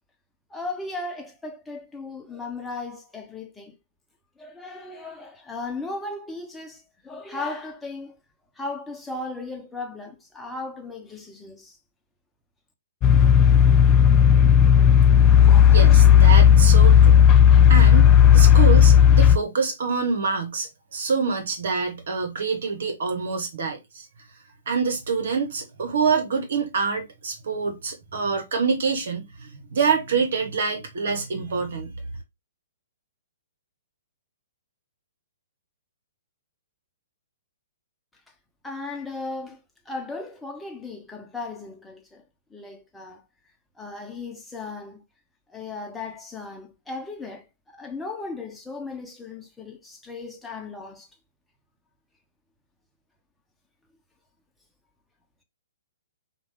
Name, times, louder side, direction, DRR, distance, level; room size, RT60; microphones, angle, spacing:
voice 1, 0.5-3.7 4.4-8.1 8.6-11.8 38.6-39.6 39.9-42.2 42.5-43.2 43.8-45.0 45.5-47.4 47.8-51.1, left 3 dB, 5° left, 1.0 m, -36 dB
sound 1, 13.0-19.4, left 9 dB, 25° left, 0.3 m, -13 dB
voice 2, 15.7-17.2 17.7-24.1 24.7-31.9, right 5 dB, 65° right, 1.4 m, -26 dB
5.0 x 2.5 x 3.3 m
hypercardioid pair, 125°, 0 cm